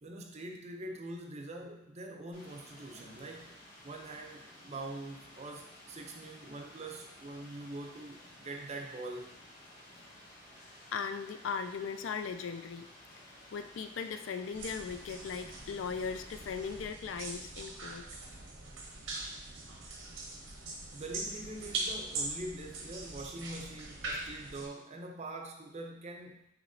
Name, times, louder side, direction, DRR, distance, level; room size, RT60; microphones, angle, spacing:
voice 1, 0.0-3.6 3.8-9.4 20.9-26.5, right 2 dB, 35° right, 2 dB, 0.5 m, -44 dB
Rain, 2.3-16.8, left 1 dB, 45° left, 1.7 m, -55 dB
voice 2, 10.9-12.9 13.5-18.0, left 6 dB, 70° left, 8 dB, 0.4 m, -38 dB
sound 1, 14.5-24.7, right 3 dB, 80° right, 0.9 m, -42 dB
6.2 x 3.0 x 2.7 m, 0.81 s
head